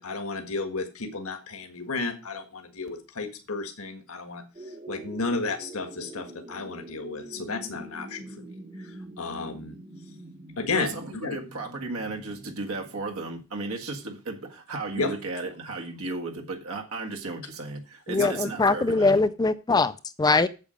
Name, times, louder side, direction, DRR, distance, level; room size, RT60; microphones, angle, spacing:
voice 1, 0.0-4.4 4.9-8.3 8.8-9.8 10.6-11.4 14.9-15.1 18.2-18.3, left 3 dB, 80° left, 6 dB, 1.5 m, -32 dB
sound 1, 4.5-13.1, right 1 dB, 25° right, 1.0 m, -45 dB
voice 2, 10.7-19.2, right 3 dB, 75° right, 2 dB, 1.7 m, -34 dB
voice 3, 18.1-19.9 20.2-20.5, left 3 dB, 20° left, 12 dB, 0.4 m, -22 dB
8.7 x 7.6 x 5.1 m, 0.32 s
head